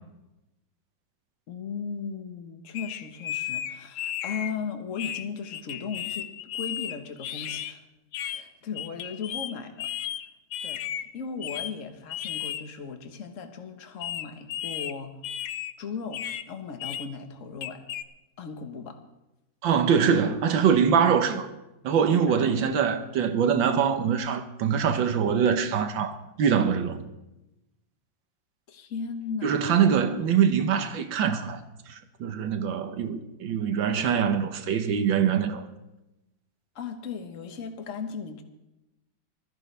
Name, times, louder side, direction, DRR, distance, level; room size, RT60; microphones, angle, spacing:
voice 1, 1.5-7.9 8.2-9.9 10.6-15.2 15.8-17.8 18.4-19.0 22.1-22.6 28.7-29.8 36.7-38.4, left 5 dB, 45° left, 1.4 m, -37 dB
sound 1, 2.7-4.5 5.0-7.7 8.1-8.4 8.8-9.5 9.8-11.0 11.4-11.7 12.1-12.6 14.0-14.9 15.2-15.7 16.1-16.4 16.8-17.1 17.6-18.0, left 10 dB, 65° left, 0.8 m, -34 dB
voice 2, 19.6-21.5 21.8-27.0 29.4-31.6 31.9-35.6, right 7 dB, 85° right, 1.8 m, -23 dB
20.5 x 14.0 x 3.3 m
omnidirectional pair, 2.0 m